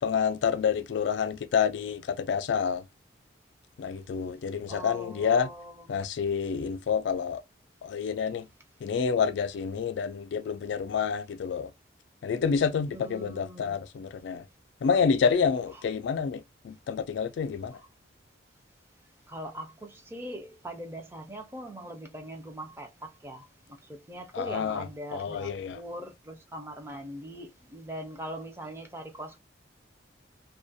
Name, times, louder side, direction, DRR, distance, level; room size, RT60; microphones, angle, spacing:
voice 1, 0.0-2.9 3.8-5.5 5.9-7.4 7.8-8.5 8.8-11.7 12.2-14.4 14.8-17.8 24.3-25.8, left 6 dB, 65° left, 0.3 m, -28 dB
voice 2, 4.7-5.7 12.9-13.8 19.3-23.5 23.9-29.4, right 1 dB, 10° right, 0.4 m, -41 dB
2.3 x 2.1 x 2.5 m
head